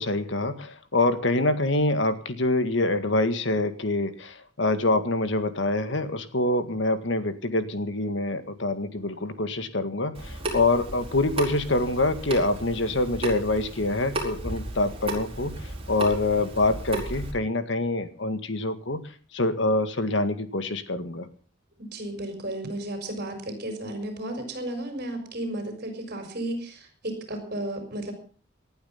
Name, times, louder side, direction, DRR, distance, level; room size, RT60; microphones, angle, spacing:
voice 1, 0.0-19.0 19.3-21.3, left 2 dB, 65° left, 10 dB, 1.9 m, -25 dB
Water tap faucet / Sink (filling or washing) / Drip, 10.1-17.3, right 1 dB, 30° right, 4.6 m, -34 dB
voice 2, 21.8-28.1, right 1 dB, 50° right, 4 dB, 4.9 m, -33 dB
19.0 x 11.5 x 5.8 m, 0.42 s
head